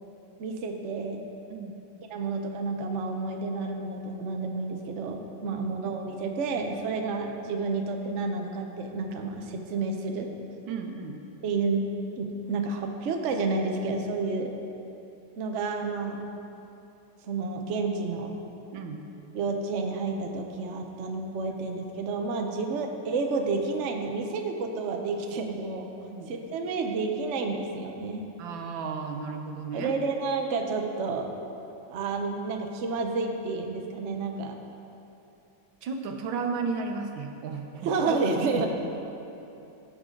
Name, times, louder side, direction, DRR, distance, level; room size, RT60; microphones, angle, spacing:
voice 1, 0.4-1.2 2.1-10.3 11.4-11.9 12.2-14.5 15.4-16.3 17.2-18.3 19.3-25.9 26.3-28.3 29.7-31.3 31.9-34.6 37.8-38.7, right 3 dB, 50° right, 3 dB, 0.9 m, -30 dB
voice 2, 10.7-11.2 18.7-19.0 22.5-22.6 26.1-26.3 28.4-29.9 35.8-38.7, right 4 dB, 85° right, 4 dB, 1.6 m, -34 dB
16.0 x 6.8 x 3.8 m, 2.9 s
omnidirectional pair, 2.1 m